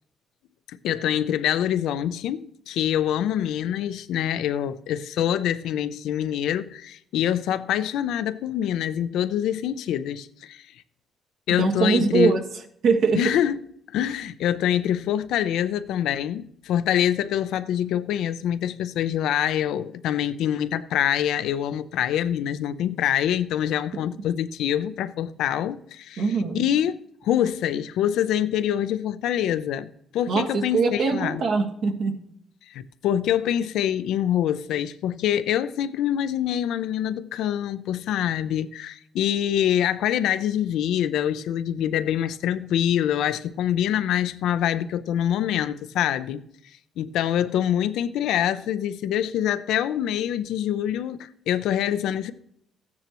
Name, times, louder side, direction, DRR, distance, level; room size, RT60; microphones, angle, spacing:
voice 1, 0.7-10.6 11.5-12.4 13.2-13.6 13.9-26.2 26.5-31.4 32.7-46.4 47.0-52.3, left 10 dB, 85° left, 0.5 m, -25 dB
voice 2, 11.6-12.4 12.8-13.2 26.2-26.6 30.3-32.1, right 4 dB, 75° right, 1.5 m, -22 dB
14.0 x 9.6 x 3.0 m
cardioid pair, 90°, 0 cm